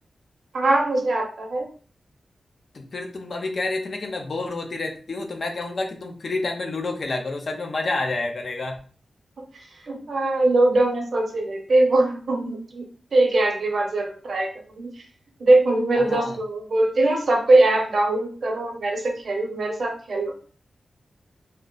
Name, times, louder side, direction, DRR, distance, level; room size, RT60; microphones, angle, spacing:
voice 1, 0.5-1.7 9.5-12.8 13.1-14.5 14.8-14.9 15.4-20.3, right 2 dB, 55° right, 2 dB, 0.7 m, -21 dB
voice 2, 2.7-8.8 16.0-16.4, left 2 dB, 50° left, 3 dB, 0.5 m, -29 dB
2.7 x 2.0 x 3.7 m, 0.42 s
wide cardioid pair, 150°, 0 cm